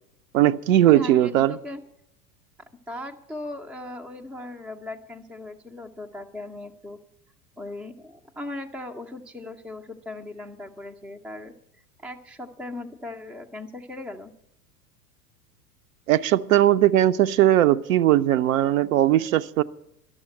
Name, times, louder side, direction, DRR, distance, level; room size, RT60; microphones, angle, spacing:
voice 1, 0.3-1.6 16.1-19.6, right 13 dB, 55° right, 0.7 m, -19 dB
voice 2, 0.9-1.8 2.6-7.0 7.6-14.3, left 2 dB, ahead, 0.4 m, -38 dB
12.0 x 6.9 x 9.9 m
figure-of-eight pair, 90°, 48 cm